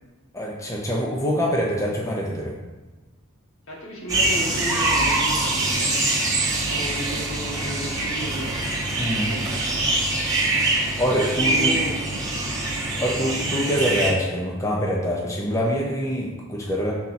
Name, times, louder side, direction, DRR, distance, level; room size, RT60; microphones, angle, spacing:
voice 1, 0.3-2.5 9.0-9.3 11.0-11.8 13.0-16.9, equal, 15° left, -2 dB, 0.7 m, -25 dB
voice 2, 3.7-6.0 6.7-8.6 9.1-9.8 11.3-12.3 13.2-13.4, equal, 70° left, -4 dB, 1.8 m, -34 dB
sound 1, 4.1-14.1, right 2 dB, 15° right, 1.1 m, -24 dB
6.1 x 4.1 x 4.3 m, 1.2 s
head